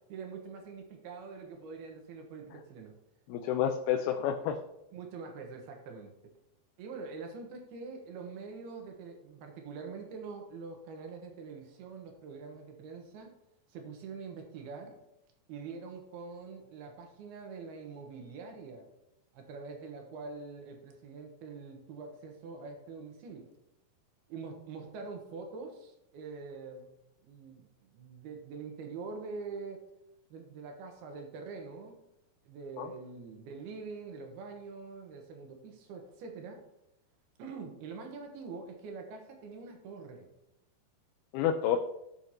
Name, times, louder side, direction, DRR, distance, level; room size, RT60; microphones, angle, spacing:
voice 1, 0.1-2.9 4.9-6.1 6.8-13.3 13.7-15.0 15.5-18.9 19.3-23.5 24.3-26.9 27.2-29.9 30.3-32.0 32.4-36.6 37.4-40.3, right 4 dB, 90° right, 3 dB, 3.3 m, -44 dB
voice 2, 3.3-4.6 32.8-32.9 41.3-41.8, left 9 dB, 85° left, 5 dB, 2.6 m, -29 dB
15.5 x 6.5 x 2.9 m, 0.85 s
omnidirectional pair, 4.4 m